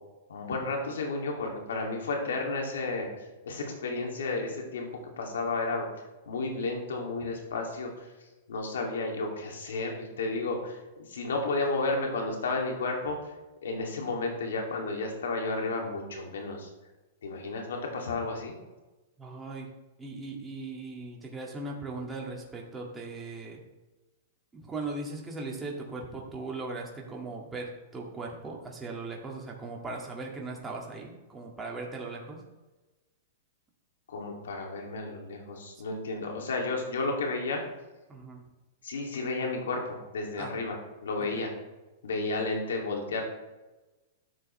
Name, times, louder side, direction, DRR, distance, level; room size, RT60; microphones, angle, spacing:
voice 1, 0.3-4.9 5.2-5.9 6.3-8.1 8.5-13.3 13.6-16.7 17.2-18.5 34.1-37.6 38.8-41.5 42.0-43.2, left 3 dB, 85° left, 1 dB, 2.5 m, -32 dB
voice 2, 19.2-19.7 20.0-23.6 24.5-32.4 38.1-38.4 40.4-40.5 41.2-41.4, right 3 dB, 15° right, -1 dB, 2.0 m, -38 dB
12.5 x 6.9 x 3.2 m, 1.1 s
hypercardioid pair, 130°, 0 cm